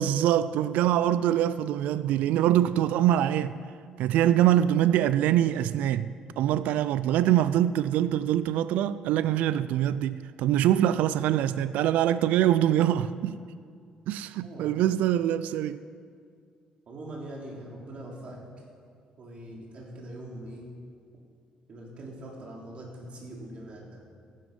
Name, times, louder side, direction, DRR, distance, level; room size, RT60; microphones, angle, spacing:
voice 1, 0.0-3.6 4.0-13.4 14.1-15.8, right 11 dB, 85° right, 0.3 m, -24 dB
voice 2, 14.4-14.8 16.9-18.4 19.2-20.7 21.7-24.0, right 1 dB, 50° right, 3.4 m, -42 dB
15.0 x 11.0 x 5.4 m
cardioid pair, 105°, 2 cm